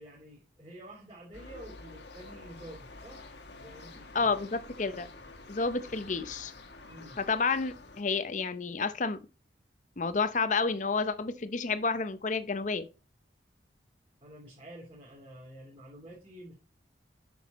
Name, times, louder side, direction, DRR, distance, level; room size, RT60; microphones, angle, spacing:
voice 1, 0.0-3.3 3.6-4.3 6.9-7.2 14.2-16.5, right 1 dB, 30° right, 3.0 m, -49 dB
sound 1, 1.3-8.0, left 2 dB, 65° left, 1.3 m, -49 dB
voice 2, 4.1-5.1 5.5-6.5 7.2-9.2 10.0-12.9, left 4 dB, 40° left, 0.7 m, -30 dB
8.3 x 6.3 x 4.1 m
head